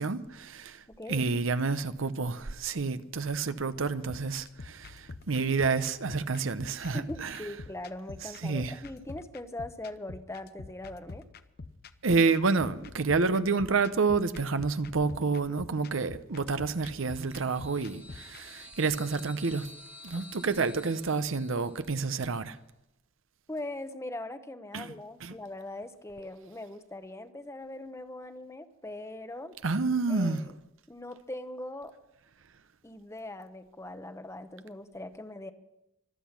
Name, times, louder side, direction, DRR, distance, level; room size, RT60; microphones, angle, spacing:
voice 1, 0.0-0.8 1.1-7.4 8.4-8.7 12.0-19.7 20.0-22.6 24.7-24.9 25.2-25.3 29.6-30.4, right 4 dB, 70° right, 0.8 m, -29 dB
voice 2, 0.9-1.3 6.9-11.2 23.5-29.6 30.1-30.5 30.9-31.9 32.8-35.5, left 1 dB, 15° left, 0.9 m, -41 dB
sound 1, 4.1-18.4, left 3 dB, 50° left, 0.7 m, -47 dB
sound 2, 16.8-22.3, left 2 dB, 5° right, 1.7 m, -51 dB
24.5 x 8.3 x 5.9 m
head